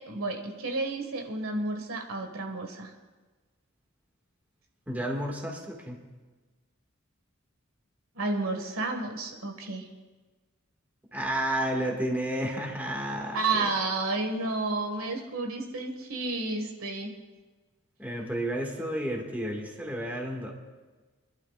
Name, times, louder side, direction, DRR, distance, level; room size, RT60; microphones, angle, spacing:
voice 1, 0.1-2.9 8.2-9.9 13.3-17.1, right 3 dB, 80° right, 3 dB, 1.8 m, -31 dB
voice 2, 4.9-6.0 11.1-13.7 18.0-20.5, right 1 dB, 10° right, 0 dB, 1.9 m, -31 dB
28.0 x 11.5 x 2.4 m, 1.3 s
head